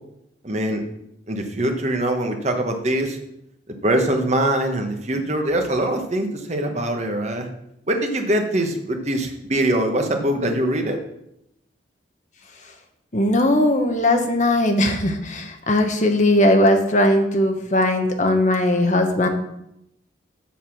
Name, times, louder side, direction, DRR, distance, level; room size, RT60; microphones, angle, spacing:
voice 1, 0.4-0.8 1.3-3.2 3.8-7.5 7.9-11.0, right 1 dB, 35° right, 4 dB, 1.2 m, -23 dB
voice 2, 13.1-19.3, left 1 dB, 40° left, 5 dB, 1.1 m, -19 dB
7.4 x 6.7 x 6.0 m, 0.80 s
head